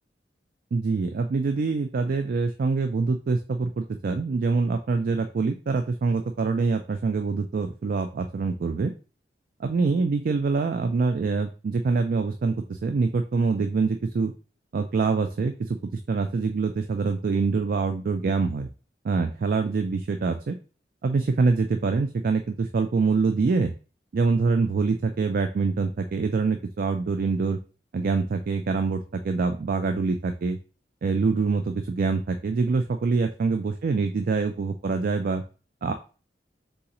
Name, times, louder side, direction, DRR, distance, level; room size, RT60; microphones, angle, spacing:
voice 1, 0.7-8.9 9.6-14.3 14.7-15.8 16.1-18.7 19.0-20.6 21.0-23.7 24.1-27.6 27.9-30.6 31.0-35.4 35.8-35.9, right 4 dB, 55° right, 7 dB, 0.4 m, -25 dB
3.9 x 3.8 x 2.9 m, 0.35 s
head